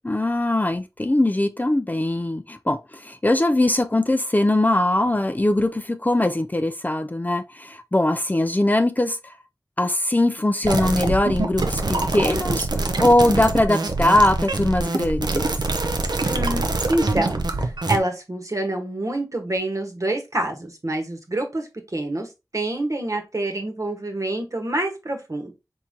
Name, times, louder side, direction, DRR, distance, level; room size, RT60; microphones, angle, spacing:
voice 1, 0.0-9.3 9.8-15.5, left 1 dB, 25° left, 0.4 m, -21 dB
sound 1, 10.6-18.0, right 2 dB, 80° right, 0.6 m, -24 dB
voice 2, 16.2-25.5, right 1 dB, 50° right, 1.2 m, -27 dB
4.4 x 3.6 x 2.7 m
wide cardioid pair, 60°, 7 cm